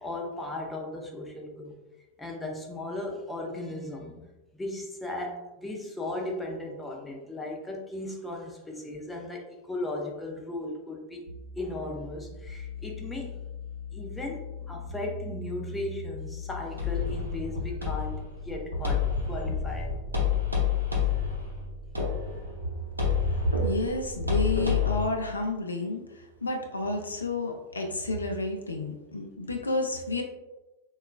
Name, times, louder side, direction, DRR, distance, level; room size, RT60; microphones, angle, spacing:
voice 1, 0.0-1.7 2.2-4.2 4.5-11.3 11.6-13.4 13.9-19.9, left 2 dB, 10° left, 0 dB, 0.5 m, -36 dB
sound 1, 11.3-20.9, left 3 dB, 55° right, 0.8 m, -41 dB
sound 2, 16.8-25.0, left 7 dB, 85° right, 0.7 m, -29 dB
voice 2, 23.2-30.2, left 1 dB, 75° left, 3 dB, 0.4 m, -30 dB
3.7 x 2.3 x 2.2 m, 1.0 s
figure-of-eight pair, 90°, 0 cm